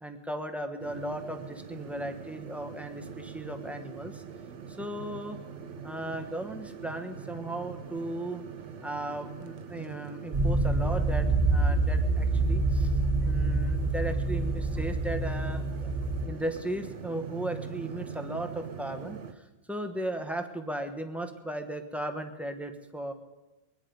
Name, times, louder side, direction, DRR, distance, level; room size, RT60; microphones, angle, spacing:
voice 1, 0.0-4.2 4.7-5.4 5.8-8.4 8.8-12.9 13.2-15.9 16.3-23.1, right 1 dB, ahead, 5 dB, 1.1 m, -36 dB
sound 1, 0.8-19.3, right 6 dB, 85° right, 1.2 m, -43 dB
sound 2, 10.3-16.3, right 2 dB, 50° right, 1.5 m, -26 dB
22.5 x 10.5 x 5.1 m, 1.1 s
omnidirectional pair, 1.2 m